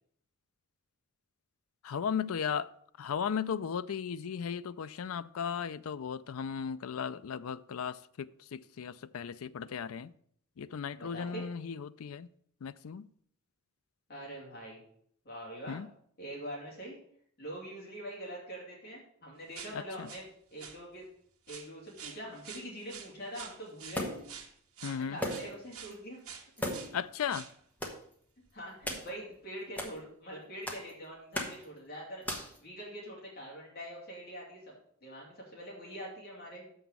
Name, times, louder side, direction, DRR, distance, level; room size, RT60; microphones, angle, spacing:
voice 1, 1.8-2.7 3.0-10.1 10.6-12.3 12.6-13.1 15.7-15.9 19.7-20.1 24.8-25.2 26.9-27.5, left 7 dB, 70° left, 0.4 m, -36 dB
voice 2, 11.0-11.4 14.1-14.8 15.2-15.8 16.2-17.0 17.4-20.2 20.5-21.1 21.5-24.2 24.8-26.2 26.6-26.7 28.5-34.7 35.0-36.6, equal, 45° left, 2.8 m, -44 dB
sound 1, 19.5-20.3 20.6-20.8 21.5-26.0 26.2-26.9 27.3-27.6 28.0-28.1 28.5-28.6 29.3-29.4, right 7 dB, 80° right, 1.3 m, -47 dB
sound 2, 23.9-24.4 25.2-25.6 25.9-26.0 26.6-27.0 27.8-28.0 28.8-29.1 29.8-29.9 30.7-30.9 31.3-31.6 32.2-32.6, left 1 dB, 5° left, 1.2 m, -36 dB
6.9 x 5.6 x 7.3 m
head